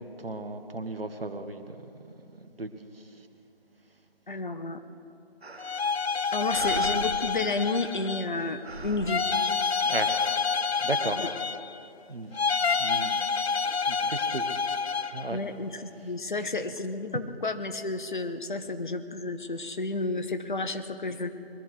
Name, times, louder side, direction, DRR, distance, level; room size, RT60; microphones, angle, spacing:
voice 1, 0.0-1.9 2.3-3.1 9.8-10.1 10.8-11.2 12.1-12.5 12.8-13.5 13.9-15.4, right 2 dB, 70° right, 8 dB, 1.3 m, -36 dB
voice 2, 4.3-4.8 6.3-9.2 11.2-11.3 15.3-21.3, left 3 dB, 50° left, 9 dB, 1.0 m, -31 dB
sound 1, 5.4-6.0 6.4-8.3 8.6-10.2, right 4 dB, 85° right, 0.8 m, -41 dB
sound 2, 5.6-8.4 9.1-11.9 12.3-15.3, left 5 dB, 85° left, 0.5 m, -28 dB
21.5 x 13.5 x 4.8 m, 2.7 s
figure-of-eight pair, 160°, 31 cm